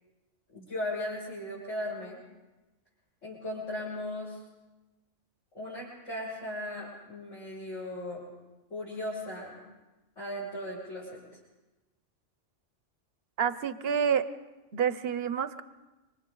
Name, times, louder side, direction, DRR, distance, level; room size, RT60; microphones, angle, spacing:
voice 1, 0.5-2.2 3.2-4.4 5.5-8.2 8.7-9.6 10.2-11.2, left 1 dB, 75° left, -8 dB, 6.4 m, -37 dB
voice 2, 13.4-14.2 14.7-15.6, right 7 dB, 55° right, 12 dB, 1.0 m, -28 dB
27.5 x 24.0 x 3.9 m, 1.1 s
omnidirectional pair, 1.3 m